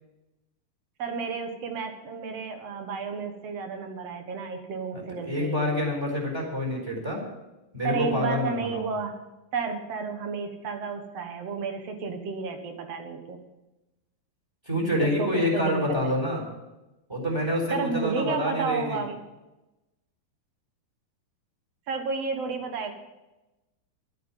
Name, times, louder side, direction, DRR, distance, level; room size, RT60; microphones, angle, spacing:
voice 1, 1.0-5.6 7.8-9.1 9.5-13.4 15.0-16.1 17.7-19.2 21.9-22.9, right 5 dB, 55° right, 5 dB, 2.2 m, -32 dB
voice 2, 4.9-7.2 7.7-8.9 14.7-16.4 17.1-19.0, left 1 dB, 5° right, 0 dB, 3.8 m, -27 dB
13.0 x 9.4 x 7.3 m, 1.0 s
omnidirectional pair, 4.0 m